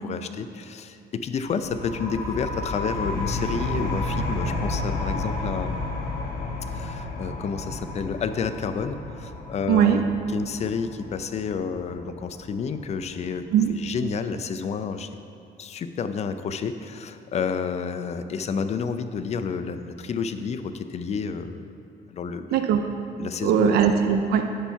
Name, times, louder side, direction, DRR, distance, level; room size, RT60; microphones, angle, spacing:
voice 1, 0.0-5.8 6.7-15.1 15.6-21.7 22.1-22.6 23.2-23.7, left 6 dB, 40° left, 10 dB, 0.5 m, -30 dB
sound 1, 1.6-13.0, left 2 dB, 70° left, 1.3 m, -31 dB
voice 2, 9.7-10.0 13.5-13.7 22.5-22.9 23.4-24.5, right 8 dB, 70° right, 6 dB, 0.5 m, -20 dB
10.0 x 4.6 x 5.6 m, 2.8 s
cardioid pair, 110°, 17 cm